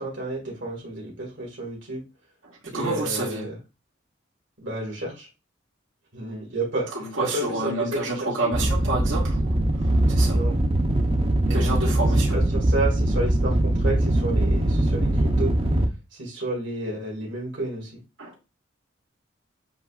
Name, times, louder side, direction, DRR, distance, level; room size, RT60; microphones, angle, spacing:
voice 1, 0.0-2.0 2.7-3.6 4.6-5.3 6.1-6.9 7.2-8.7 10.2-10.6 11.4-11.7 12.3-15.5 16.1-18.0, right 2 dB, 70° right, -3 dB, 2.1 m, -31 dB
voice 2, 2.4-3.5 6.9-10.4 11.5-12.4 18.2-18.3, right 2 dB, 90° right, -5 dB, 2.2 m, -29 dB
sound 1, 8.5-15.9, right 1 dB, 30° right, 0.6 m, -21 dB
7.4 x 3.0 x 2.4 m, 0.27 s
head